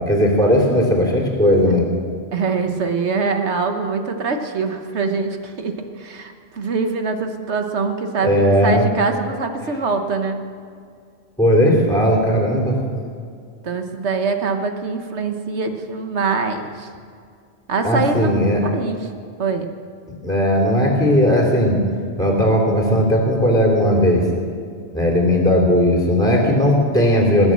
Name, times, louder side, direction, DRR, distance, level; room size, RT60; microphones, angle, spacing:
voice 1, 0.0-1.8 8.2-8.8 11.4-12.8 17.8-18.6 20.2-21.8 22.1-24.2 24.9-27.5, equal, 5° left, -1 dB, 2.9 m, -17 dB
voice 2, 2.3-10.4 13.6-16.9 17.7-18.3 18.6-19.1 19.4-19.7, right 4 dB, 75° right, 6 dB, 1.5 m, -23 dB
20.0 x 7.2 x 7.6 m, 2.2 s
omnidirectional pair, 1.2 m